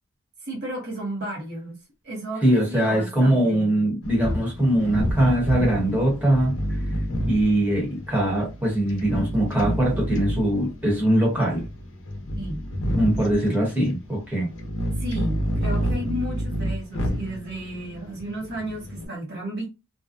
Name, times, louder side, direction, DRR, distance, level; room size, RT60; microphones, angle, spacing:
voice 1, 0.4-3.9 12.3-12.7 15.0-19.7, right 1 dB, 45° right, 0.8 m, -33 dB
voice 2, 2.4-7.0 7.3-11.7 12.9-14.5, right 1 dB, 10° right, 1.0 m, -22 dB
sound 1, 4.0-19.1, equal, 55° left, 0.7 m, -29 dB
2.5 x 2.1 x 2.4 m
head